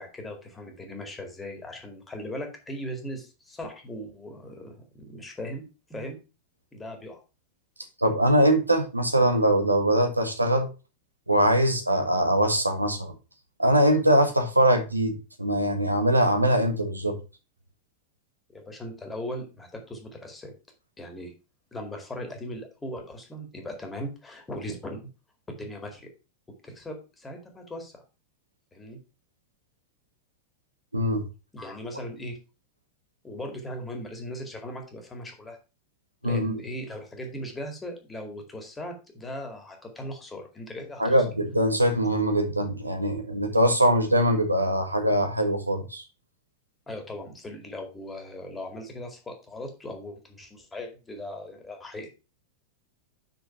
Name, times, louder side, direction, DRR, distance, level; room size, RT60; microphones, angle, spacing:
voice 1, 0.0-5.6 5.9-6.2 6.7-7.2 18.5-20.5 21.0-21.3 21.7-25.1 25.5-26.1 26.6-28.0 28.7-29.0 31.5-32.4 33.2-35.6 36.2-41.2 43.5-43.6 46.9-52.1, left 1 dB, 10° left, 2.2 m, -38 dB
voice 2, 8.0-10.7 11.3-13.1 13.6-17.2 30.9-31.2 36.2-36.5 41.0-46.0, right 1 dB, 85° right, 1.5 m, -22 dB
5.9 x 5.5 x 5.4 m
figure-of-eight pair, 90°, 0 cm